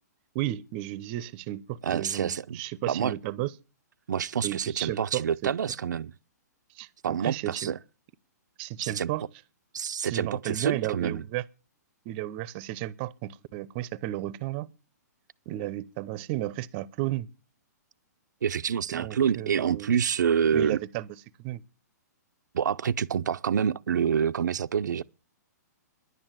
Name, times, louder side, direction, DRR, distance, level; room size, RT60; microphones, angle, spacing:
voice 1, 0.3-3.5 4.4-5.5 6.7-7.7 8.6-9.2 10.0-11.4 12.1-14.7 15.5-17.3 18.9-19.9 20.5-21.1 21.4-21.6, right 15 dB, 35° right, 0.7 m, -33 dB
voice 2, 1.8-2.6 2.9-3.1 4.1-6.1 7.0-7.8 8.8-9.1 9.7-11.2 18.4-20.8 22.5-25.0, right 7 dB, 80° right, 0.6 m, -27 dB
11.0 x 8.9 x 7.5 m
hypercardioid pair, 145°, 10 cm